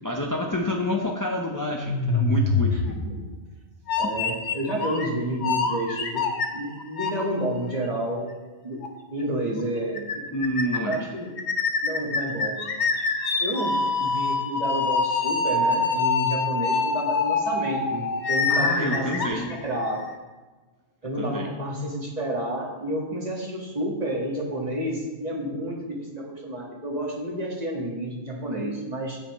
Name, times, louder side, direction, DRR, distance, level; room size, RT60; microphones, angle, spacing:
voice 1, 0.0-2.7 10.3-11.1 18.5-19.5 21.2-21.5, left 1 dB, 20° left, 0 dB, 0.6 m, -28 dB
sound 1, 1.8-3.4 3.9-5.1 5.4-7.2 7.7-7.8 8.8-8.9 9.2-9.3 9.6-9.7 10.0-10.1 10.4-11.0 11.4-20.0, left 4 dB, 70° left, 1.2 m, -25 dB
voice 2, 2.7-3.2 4.0-6.3 6.5-8.3 8.6-8.8 9.1-10.0 10.9-11.3 11.8-12.7 13.4-20.0 21.0-29.2, right 1 dB, 35° right, -3 dB, 1.8 m, -30 dB
16.0 x 5.6 x 3.1 m, 1.3 s
omnidirectional pair, 1.2 m